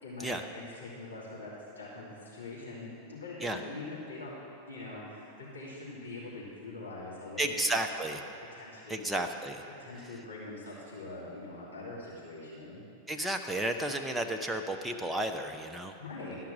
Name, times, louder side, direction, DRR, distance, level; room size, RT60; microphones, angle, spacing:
voice 1, 0.0-9.0 9.6-12.8 16.0-16.4, left 2 dB, 75° left, -7 dB, 2.7 m, -43 dB
voice 2, 7.4-8.2 8.9-9.6 13.1-15.9, right 1 dB, 5° right, 4 dB, 0.6 m, -32 dB
13.0 x 5.8 x 6.2 m, 2.5 s
figure-of-eight pair, 90°, 0 cm